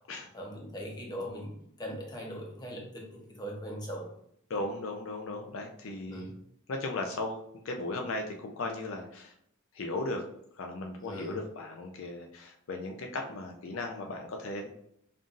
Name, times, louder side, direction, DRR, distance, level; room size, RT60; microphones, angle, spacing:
voice 1, 0.3-4.1 6.1-6.3 11.0-11.4, equal, 20° left, -1 dB, 0.8 m, -40 dB
voice 2, 4.5-6.3 6.7-7.4 7.6-9.3 9.7-10.2 10.6-14.7, left 2 dB, 65° left, 3 dB, 0.4 m, -36 dB
5.4 x 2.5 x 2.5 m, 0.72 s
head